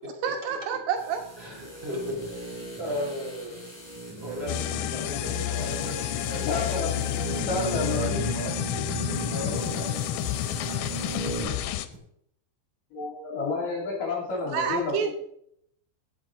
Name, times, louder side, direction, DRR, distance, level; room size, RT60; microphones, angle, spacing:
voice 1, 0.2-1.2 14.5-15.1, right 7 dB, 80° right, 4 dB, 3.8 m, -28 dB
sound 1, 1.0-11.6 11.9-12.0, right 3 dB, 10° left, 2.5 m, -37 dB
voice 2, 1.4-2.5 2.8-3.6 4.2-7.3 7.8-9.9, left 1 dB, 15° right, -2 dB, 2.9 m, -36 dB
sound 2, 4.5-11.9, left 13 dB, 85° left, 3.1 m, -30 dB
voice 3, 6.3-7.0 7.3-8.2 12.9-15.1, left 3 dB, 50° left, -1 dB, 3.5 m, -30 dB
16.5 x 7.6 x 3.7 m, 0.70 s
omnidirectional pair, 5.6 m